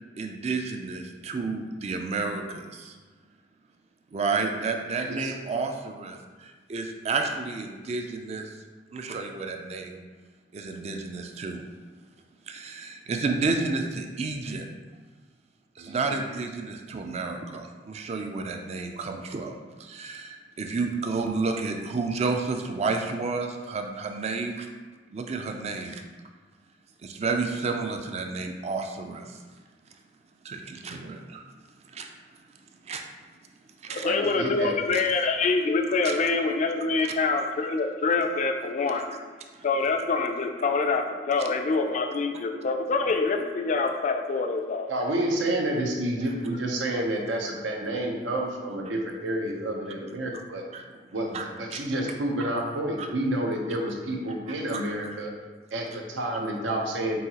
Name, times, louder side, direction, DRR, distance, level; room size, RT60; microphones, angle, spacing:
voice 1, 0.2-2.9 4.1-8.5 8.9-10.0 10.5-11.7 12.5-14.7 15.8-24.7 25.1-26.0 27.0-29.4 30.4-31.5 31.9-32.1 32.8-33.1 33.8-34.1 34.9-35.0 36.0-36.1 37.0-37.1 50.7-50.8 51.3-51.4 51.7-51.8 53.0-53.1 54.7-54.8, right 4 dB, 35° right, 4 dB, 0.4 m, -31 dB
voice 2, 15.8-16.2 33.9-34.7 44.9-50.6 51.1-55.3 55.7-57.2, right 1 dB, 90° right, 1 dB, 0.7 m, -29 dB
voice 3, 33.9-39.1 39.6-44.9, left 4 dB, 45° left, 5 dB, 0.3 m, -25 dB
5.4 x 2.7 x 2.8 m, 1.4 s
head